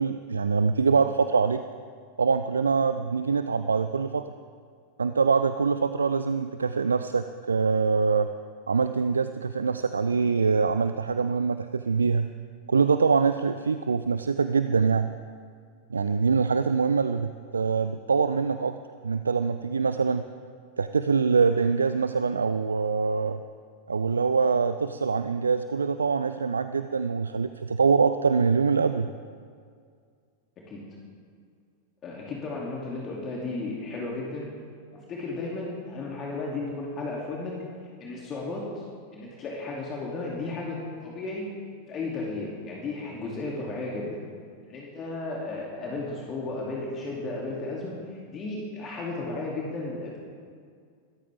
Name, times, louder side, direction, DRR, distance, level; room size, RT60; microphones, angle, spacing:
voice 1, 0.0-1.6 2.2-4.3 5.0-8.3 8.7-12.3 12.7-15.1 15.9-18.8 19.0-20.2 20.8-23.4 23.9-29.1, right 5 dB, 75° right, 11 dB, 0.4 m, -24 dB
voice 2, 32.0-34.5 34.9-37.5 38.0-38.9 39.1-41.5 41.9-44.2 44.6-50.2, left 2 dB, 30° left, -3 dB, 2.7 m, -34 dB
25.5 x 13.5 x 3.6 m, 2.1 s
figure-of-eight pair, 90°, 0 cm